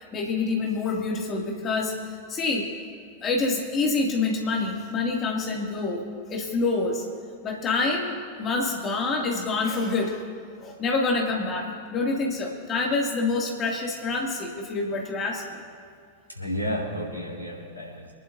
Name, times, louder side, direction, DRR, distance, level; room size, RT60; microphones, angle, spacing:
voice 1, 0.1-2.0 2.3-2.7 3.2-7.0 7.4-10.2 10.6-15.6, left 3 dB, 25° left, -1 dB, 2.7 m, -27 dB
voice 2, 16.3-18.1, equal, 85° right, -3 dB, 4.1 m, -32 dB
28.0 x 11.0 x 2.8 m, 2.2 s
figure-of-eight pair, 90°, 0 cm